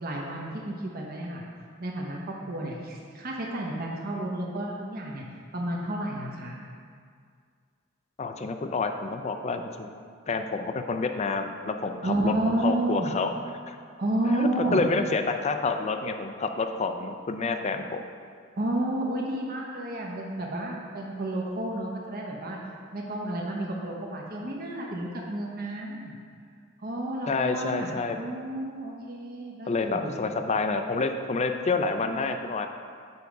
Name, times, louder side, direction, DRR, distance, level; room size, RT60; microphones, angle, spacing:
voice 1, 0.0-1.4 1.8-5.2 5.5-6.6 12.0-13.1 14.0-14.8 18.6-22.6 22.9-26.1 26.8-30.2, right 1 dB, 50° right, -2 dB, 0.9 m, -31 dB
voice 2, 8.2-9.9 10.3-13.3 13.7-13.8 14.3-18.1 27.3-28.2 29.7-32.7, left 4 dB, 35° left, 7 dB, 0.4 m, -28 dB
7.0 x 5.1 x 4.7 m, 2.1 s
head